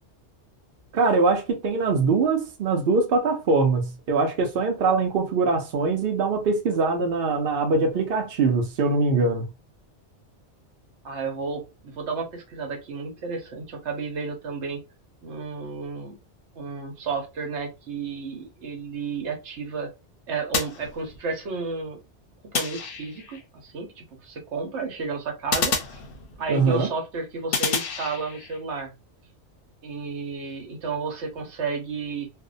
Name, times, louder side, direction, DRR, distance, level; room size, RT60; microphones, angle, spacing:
voice 1, 0.9-9.4 26.5-26.9, right 4 dB, 60° right, 0.8 m, -22 dB
voice 2, 11.0-14.8 15.2-16.2 16.6-19.9 20.3-22.0 22.5-25.8 26.4-28.9 29.8-32.3, right 4 dB, 75° right, 1.1 m, -32 dB
sound 1, 20.5-21.5 22.5-23.4 25.5-26.6 27.5-28.6, left 5 dB, 60° left, 0.7 m, -29 dB
2.6 x 2.1 x 2.4 m
omnidirectional pair, 1.2 m